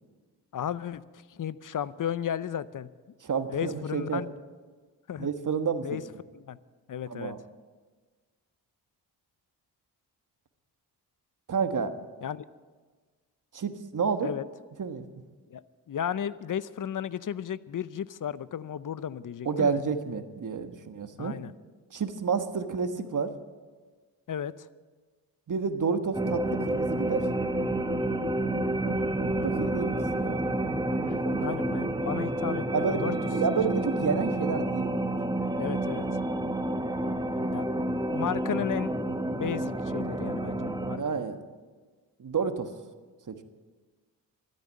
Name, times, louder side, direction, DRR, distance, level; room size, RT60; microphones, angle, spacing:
voice 1, 0.5-1.0 1.3-2.9 3.5-4.3 5.1-5.3 5.8-6.0 6.3-6.6 6.9-7.3 12.2-12.4 14.2-14.4 15.5-19.8 21.2-21.5 24.3-24.7 29.3-29.9 31.1-33.1 35.6-36.1 37.5-37.7 38.1-38.9 39.3-41.2, left 9 dB, 50° left, 17 dB, 0.7 m, -34 dB
voice 2, 3.2-4.2 5.2-5.9 7.1-7.4 11.5-11.9 13.5-14.3 14.8-15.1 19.4-21.3 21.9-23.3 25.5-27.3 29.4-29.9 30.2-30.4 31.0-31.5 32.7-35.2 41.0-41.4 42.2-42.7 43.3-43.4, right 5 dB, 45° right, 9 dB, 1.4 m, -30 dB
sound 1, 26.1-41.0, right 1 dB, 10° right, 1.1 m, -29 dB
13.0 x 9.5 x 8.9 m, 1.4 s
cardioid pair, 60°, 42 cm